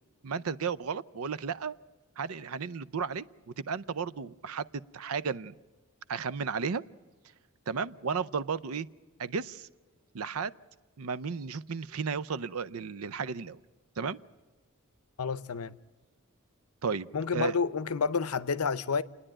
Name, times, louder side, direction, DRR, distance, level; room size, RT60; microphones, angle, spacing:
voice 1, 0.2-1.7 2.2-5.5 6.1-6.8 7.7-8.9 9.2-9.7 10.1-10.5 11.0-13.6 14.0-14.2 16.8-17.6, right 5 dB, 75° right, 0.6 m, -34 dB
voice 2, 15.2-15.8 17.1-19.0, left 5 dB, 85° left, 0.7 m, -29 dB
29.5 x 10.0 x 8.9 m
head